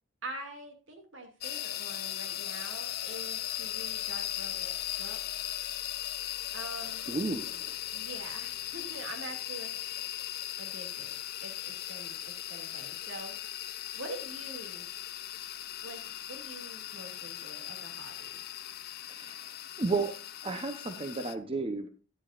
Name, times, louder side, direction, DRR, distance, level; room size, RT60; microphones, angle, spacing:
voice 1, 0.2-5.4 6.5-7.1 7.9-9.8 10.6-14.9 15.8-18.4, right 1 dB, 70° right, 3 dB, 2.5 m, -45 dB
sound 1, 1.4-21.3, left 12 dB, 55° left, 0.6 m, -38 dB
voice 2, 7.1-7.7 19.1-19.4 19.8-20.1 20.4-21.9, right 3 dB, 30° right, 6 dB, 0.8 m, -32 dB
13.5 x 10.5 x 2.5 m, 0.34 s
head